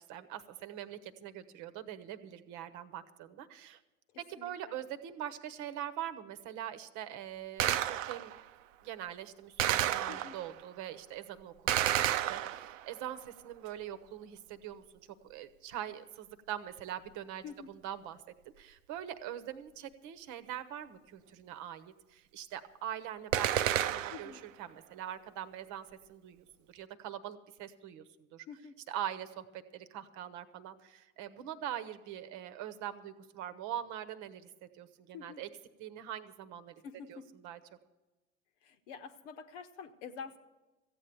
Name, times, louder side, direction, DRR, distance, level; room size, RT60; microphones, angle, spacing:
voice 1, 0.0-3.8 4.3-8.3 8.8-14.8 15.2-18.2 18.6-28.5 28.9-35.5 35.8-36.8 37.1-37.6, right 11 dB, 50° right, 11 dB, 1.0 m, -43 dB
voice 2, 4.4-4.8 10.1-10.4 17.4-17.7 24.1-24.4 28.5-28.8 35.1-35.4 36.8-37.3 38.6-40.4, left 6 dB, 65° left, 9 dB, 1.2 m, -47 dB
Gunshot gunfire, 7.6-8.4 9.6-10.6 11.7-12.9 23.3-24.4, right 12 dB, 70° right, 0.7 m, -31 dB
15.0 x 8.7 x 7.0 m, 1.1 s
hypercardioid pair, 80°, 39 cm